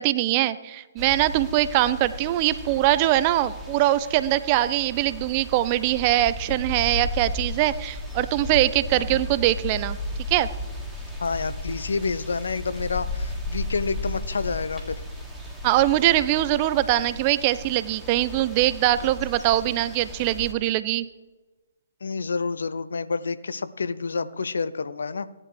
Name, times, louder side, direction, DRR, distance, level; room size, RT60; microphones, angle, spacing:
voice 1, 0.0-10.0 10.3-10.5 15.6-21.1, right 15 dB, 25° right, 16 dB, 0.4 m, -22 dB
sound 1, 1.0-20.5, left 1 dB, ahead, 1.7 m, -35 dB
voice 2, 8.9-9.2 11.2-15.0 22.0-25.3, left 4 dB, 60° left, 15 dB, 0.5 m, -29 dB
16.5 x 11.0 x 3.3 m, 1.2 s
figure-of-eight pair, 130°, 0 cm